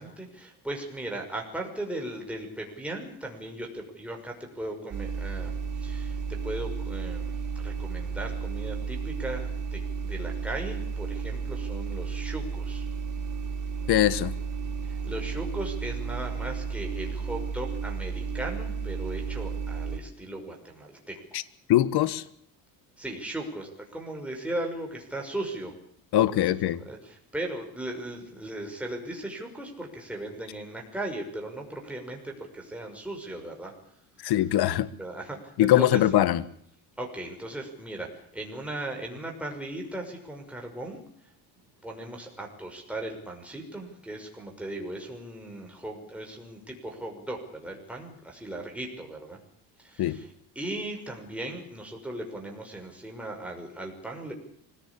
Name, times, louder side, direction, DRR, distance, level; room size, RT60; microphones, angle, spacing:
voice 1, 0.0-12.8 14.8-21.4 23.0-25.7 26.1-33.7 34.2-34.3 35.0-36.0 37.0-41.0 41.8-49.4 49.8-54.3, right 1 dB, 5° right, 1 dB, 6.1 m, -37 dB
sound 1, 4.9-20.0, right 5 dB, 45° right, 6.4 m, -33 dB
voice 2, 13.9-14.3 21.3-21.4 21.7-22.2 26.1-26.8 34.2-34.9 35.6-36.4 50.0-50.2, left 13 dB, 65° left, 16 dB, 1.5 m, -22 dB
25.0 x 17.5 x 8.6 m, 0.67 s
cardioid pair, 105°, 42 cm